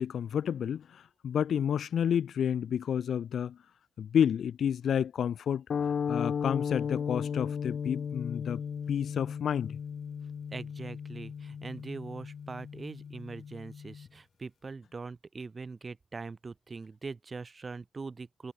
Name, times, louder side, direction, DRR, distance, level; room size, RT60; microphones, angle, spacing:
voice 1, 0.0-3.6 4.0-8.6 8.9-9.8, left 8 dB, 70° left, 1.2 m, -30 dB
sound 1, 5.7-14.1, left 7 dB, 55° left, 1.3 m, -36 dB
voice 2, 10.5-18.5, right 4 dB, 30° right, 3.3 m, -42 dB
wide cardioid pair, 145°, 0 cm